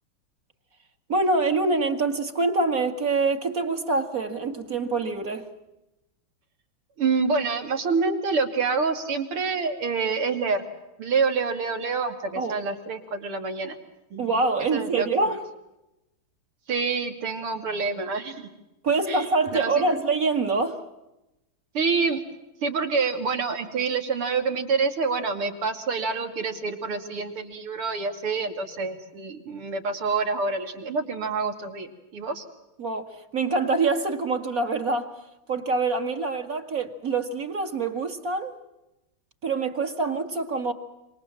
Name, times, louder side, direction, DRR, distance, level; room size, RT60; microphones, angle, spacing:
voice 1, 1.1-5.5 12.4-12.5 14.2-15.4 18.8-20.8 32.8-35.1 35.5-38.6 39.4-40.7, right 3 dB, 40° right, 2.3 m, -25 dB
voice 2, 7.0-10.6 11.0-13.8 14.1-14.3 14.7-15.4 16.7-18.5 19.1-19.3 19.5-19.7 21.7-22.2 22.6-32.5, right 4 dB, 90° right, 3.4 m, -27 dB
27.5 x 26.0 x 7.5 m
omnidirectional pair, 2.3 m